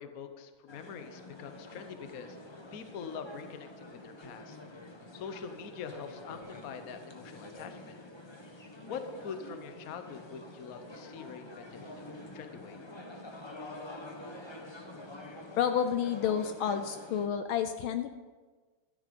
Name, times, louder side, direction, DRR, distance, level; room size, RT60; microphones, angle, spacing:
voice 1, 0.0-2.4 2.7-4.6 5.1-8.0 8.9-12.0 12.3-12.8, left 6 dB, 50° left, 8 dB, 1.1 m, -44 dB
sound 1, 0.7-17.3, left 1 dB, 25° left, 0.6 m, -47 dB
voice 2, 15.6-18.1, left 8 dB, 75° left, 9 dB, 1.3 m, -30 dB
13.0 x 11.0 x 5.2 m, 1.4 s
omnidirectional pair, 2.4 m